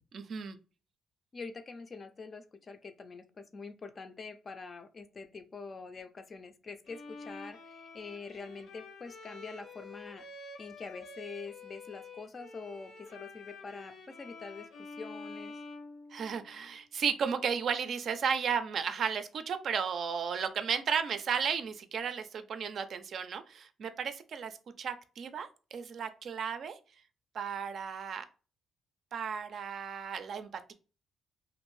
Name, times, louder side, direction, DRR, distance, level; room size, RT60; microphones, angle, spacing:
voice 1, 0.1-0.6 16.1-26.8 27.3-28.2 29.1-30.7, right 6 dB, 60° right, 9 dB, 0.4 m, -34 dB
voice 2, 1.3-10.3 10.6-15.6, left 4 dB, 40° left, 9 dB, 0.4 m, -45 dB
Bowed string instrument, 6.9-16.7, left 3 dB, 70° left, 0.7 m, -48 dB
2.6 x 2.6 x 3.1 m, 0.34 s
cardioid pair, 90°, 0 cm